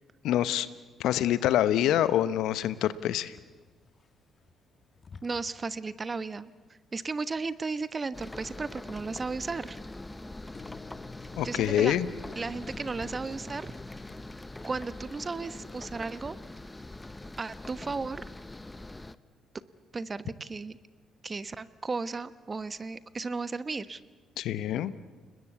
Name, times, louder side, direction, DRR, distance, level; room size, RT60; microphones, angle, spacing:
voice 1, 0.2-0.7 1.0-3.4 11.4-12.1 24.4-24.9, left 11 dB, 65° left, 15 dB, 0.9 m, -26 dB
sound 1, 2.6-5.7 5.9-6.4 6.7-6.8 7.2-7.9 8.2-9.0 10.5-14.5, left 4 dB, 40° left, 1.8 m, -51 dB
voice 2, 5.2-6.5 6.9-9.8 11.4-12.0 12.4-13.7 14.6-16.4 17.4-18.2 19.9-20.8 21.2-24.0, right 4 dB, 30° right, 14 dB, 1.1 m, -35 dB
sound 2, 8.1-19.2, left 2 dB, 15° left, 1.0 m, -43 dB
29.5 x 20.5 x 8.2 m, 1.4 s
hypercardioid pair, 50°, 0 cm